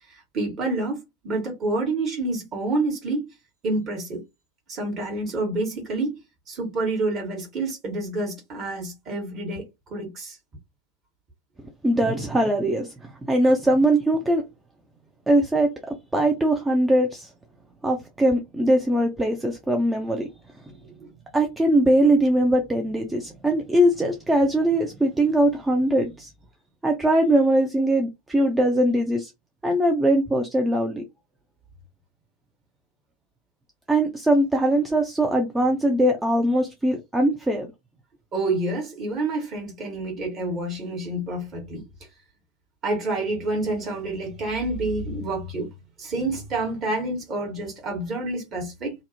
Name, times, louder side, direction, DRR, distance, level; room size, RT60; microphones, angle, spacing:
voice 1, 0.3-3.2 3.6-4.2 4.7-6.1 6.5-9.6 9.9-10.4 21.0-21.1 38.3-41.8 42.8-45.7 46.0-48.9, right 2 dB, 35° right, 1.2 m, -28 dB
voice 2, 11.8-14.4 15.3-15.7 16.1-17.3 17.8-20.3 21.3-26.3 26.8-29.3 29.6-31.0 33.9-37.7, right 1 dB, 10° right, 0.4 m, -21 dB
2.5 x 2.0 x 2.6 m
figure-of-eight pair, 80°, 0 cm